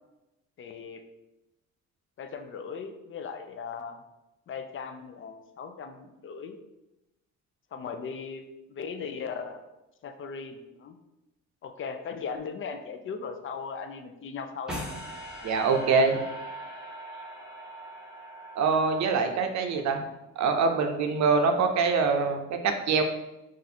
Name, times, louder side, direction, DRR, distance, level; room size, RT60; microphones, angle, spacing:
voice 1, 0.6-1.0 2.2-4.0 4.5-6.6 7.7-8.4 8.7-9.6 10.0-11.0 11.6-14.9, left 5 dB, 45° left, 7 dB, 0.4 m, -38 dB
sound 1, 14.7-19.9, right 1 dB, ahead, 0.9 m, -41 dB
voice 2, 15.4-16.2 18.6-20.0 20.4-23.0, right 4 dB, 65° right, 5 dB, 0.6 m, -24 dB
2.7 x 2.5 x 4.1 m, 0.96 s
cardioid pair, 90°, 30 cm